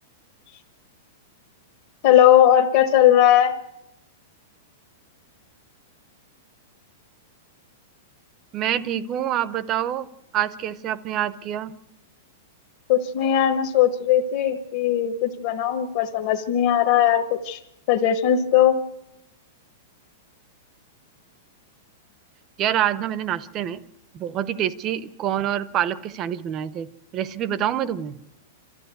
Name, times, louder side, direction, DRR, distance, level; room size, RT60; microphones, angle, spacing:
voice 1, 2.0-3.5 12.9-17.6 17.9-18.8, left 11 dB, 40° left, 2 dB, 1.2 m, -18 dB
voice 2, 8.5-10.1 10.3-11.7 22.6-23.8 24.1-26.9 27.1-28.2, right 11 dB, 20° right, 16 dB, 0.7 m, -26 dB
28.5 x 13.5 x 8.2 m, 0.90 s
supercardioid pair, 175°, 0 cm